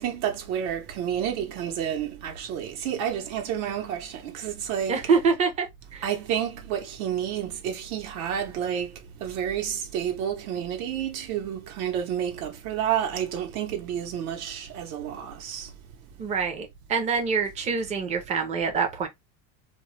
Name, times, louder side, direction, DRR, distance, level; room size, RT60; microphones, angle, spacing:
voice 1, 0.0-5.0 6.0-8.9 9.2-15.7, right 9 dB, 80° right, 0.9 m, -30 dB
voice 2, 4.9-5.7 5.9-6.0 16.2-19.1, right 5 dB, 15° right, 0.4 m, -25 dB
2.3 x 2.0 x 3.0 m
supercardioid pair, 145°, 44 cm